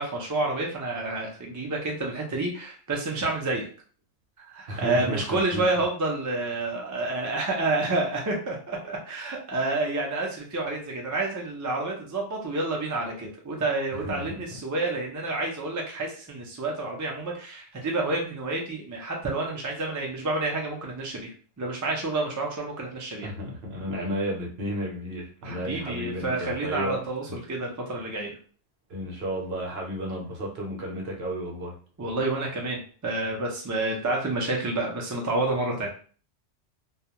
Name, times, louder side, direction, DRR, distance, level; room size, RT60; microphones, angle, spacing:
voice 1, 0.0-3.7 4.5-21.3 21.6-23.3 25.4-28.4 32.0-35.9, right 2 dB, 30° right, -1 dB, 0.3 m, -29 dB
voice 2, 4.7-5.8 14.0-14.4 23.2-27.0 28.9-31.8, equal, 65° right, -1 dB, 0.9 m, -32 dB
2.3 x 2.3 x 2.8 m, 0.42 s
omnidirectional pair, 1.2 m